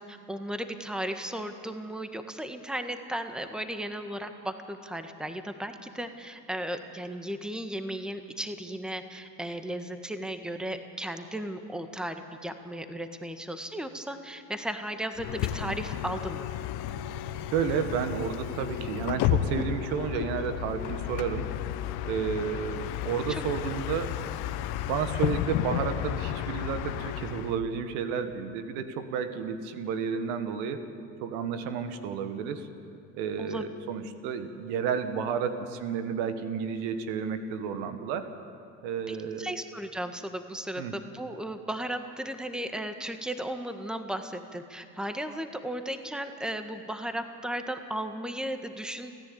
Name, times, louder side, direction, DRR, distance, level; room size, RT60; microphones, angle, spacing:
voice 1, 0.0-16.5 23.3-23.4 33.4-33.6 39.1-49.1, right 1 dB, ahead, 7 dB, 1.5 m, -35 dB
Bus, 15.2-27.6, left 11 dB, 65° left, 1.0 m, -32 dB
voice 2, 17.5-21.5 22.0-24.1 24.9-30.8 31.2-32.7 33.1-38.3 38.8-39.5 40.8-40.9, right 7 dB, 70° right, 9 dB, 1.6 m, -31 dB
30.0 x 10.5 x 8.6 m, 2.4 s
hypercardioid pair, 75°, 41 cm